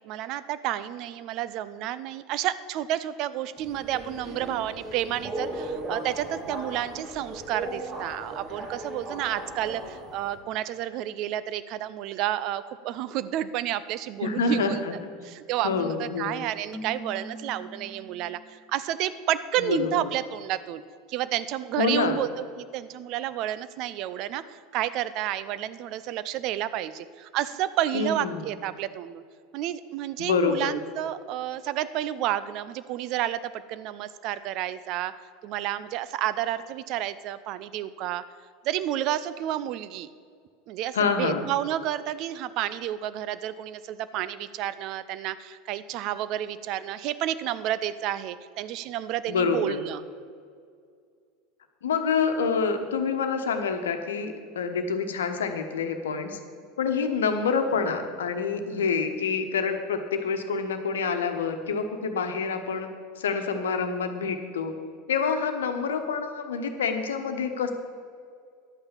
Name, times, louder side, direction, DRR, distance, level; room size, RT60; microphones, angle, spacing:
voice 1, 0.0-14.8 15.2-18.4 18.7-20.8 21.1-22.3 22.6-29.2 29.5-35.1 35.4-38.2 38.6-40.1 40.7-50.0, right 12 dB, 50° right, 14 dB, 0.5 m, -30 dB
Subway metro underground, 3.6-10.4, right 1 dB, 25° right, 2.6 m, -37 dB
voice 2, 14.2-14.9 15.6-16.4 19.6-20.1 21.8-22.2 27.9-28.5 30.2-30.7 40.9-41.5 49.3-49.8 51.8-56.4 56.8-62.9 63.2-64.7 65.1-67.7, left 5 dB, 70° left, 6 dB, 1.2 m, -27 dB
Keyboard (musical), 16.7-18.7, equal, 20° left, 0.6 m, -42 dB
11.0 x 8.7 x 7.2 m, 2.2 s
figure-of-eight pair, 80°, 0 cm